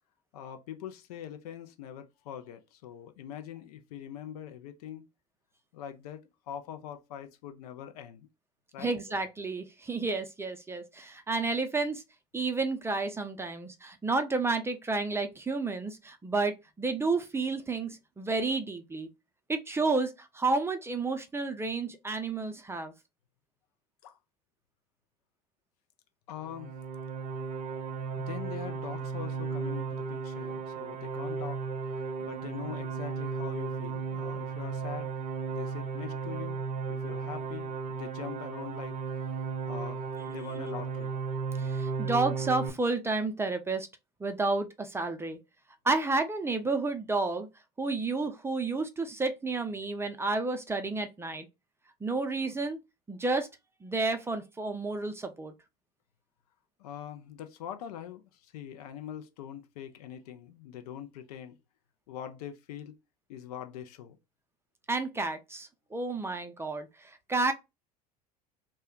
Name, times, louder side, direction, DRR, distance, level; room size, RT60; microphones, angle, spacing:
voice 1, 0.3-5.0 5.7-8.3 8.7-8.9 24.0-24.2 26.3-26.8 28.2-31.6 32.0-35.1 35.5-36.6 36.9-39.0 39.6-41.1 56.8-61.6 62.1-63.0 63.3-64.2, left 10 dB, 70° left, 0.5 m, -43 dB
voice 2, 8.8-12.0 12.3-19.1 19.5-22.9 41.6-43.9 44.2-45.4 45.8-47.5 47.8-51.5 52.0-52.8 53.1-53.5 53.8-55.5 64.9-67.5, right 3 dB, 10° right, 0.5 m, -31 dB
sound 1, 26.4-42.7, right 5 dB, 45° right, 0.8 m, -35 dB
2.3 x 2.1 x 3.6 m
hypercardioid pair, 70°, 20 cm